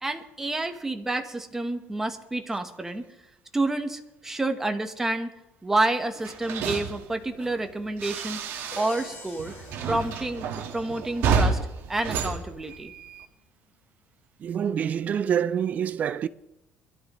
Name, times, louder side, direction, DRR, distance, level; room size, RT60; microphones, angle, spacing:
voice 1, 0.0-3.0 3.5-5.3 5.6-8.4 8.8-9.5 9.9-10.4 10.7-11.6 11.9-12.9, right 2 dB, 10° right, 1.0 m, -29 dB
sound 1, 6.2-9.1 9.4-13.2, right 5 dB, 55° right, 1.6 m, -30 dB
Crash cymbal, 8.7-10.9, left 2 dB, 45° left, 5.6 m, -45 dB
voice 2, 14.4-16.3, right 8 dB, 35° right, 0.4 m, -26 dB
22.0 x 12.5 x 3.1 m
cardioid pair, 165°, 5 cm